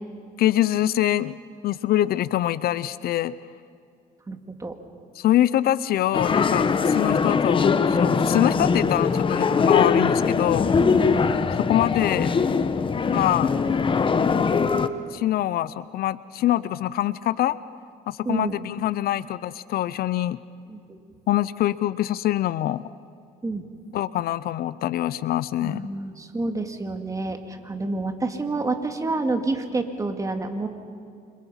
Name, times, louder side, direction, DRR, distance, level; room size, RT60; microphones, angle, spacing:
voice 1, 0.4-1.4 1.6-3.4 5.2-10.7 11.6-12.3 13.1-13.5 15.1-17.6 18.1-20.4 21.3-22.9 23.9-25.9, left 13 dB, 65° left, 17 dB, 0.6 m, -24 dB
voice 2, 4.3-4.8 8.5-8.8 10.7-11.3 18.3-18.6 20.7-21.0 23.4-23.7 25.6-30.7, right 3 dB, 20° right, 6 dB, 2.2 m, -29 dB
sound 1, 6.1-14.9, left 5 dB, 30° left, 1.1 m, -21 dB
29.5 x 25.5 x 5.7 m, 2.3 s
cardioid pair, 110°, 17 cm